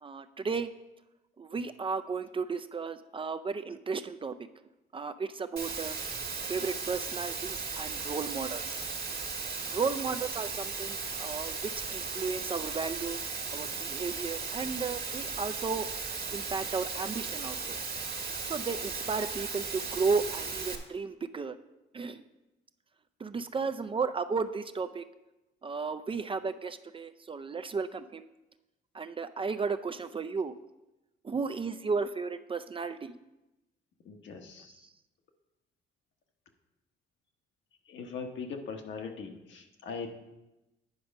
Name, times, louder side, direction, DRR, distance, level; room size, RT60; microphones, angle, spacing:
voice 1, 0.0-0.7 1.4-4.3 4.9-5.9 6.5-8.8 9.7-13.2 13.5-15.9 16.3-17.8 18.4-21.6 21.9-22.2 23.2-25.0 25.6-28.3 28.9-30.5 31.2-33.2, right 4 dB, 25° right, 10 dB, 0.4 m, -34 dB
Water, 5.6-20.8, right 5 dB, 50° right, 1.5 m, -36 dB
voice 2, 34.0-34.8 37.8-40.1, left 5 dB, 70° left, 4 dB, 1.2 m, -40 dB
9.6 x 4.9 x 5.3 m, 1.0 s
cardioid pair, 90°, 20 cm